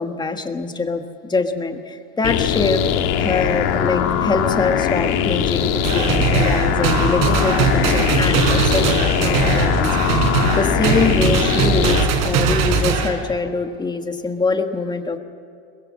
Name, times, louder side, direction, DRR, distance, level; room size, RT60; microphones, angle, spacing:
voice 1, 0.0-2.8 3.2-15.2, left 3 dB, 10° left, 6 dB, 1.5 m, -24 dB
sound 1, 2.2-12.0, left 9 dB, 65° left, 2.0 m, -21 dB
sound 2, 5.8-13.1, right 5 dB, 60° right, 4.1 m, -20 dB
23.0 x 22.0 x 7.5 m, 2.4 s
supercardioid pair, 140°, 36 cm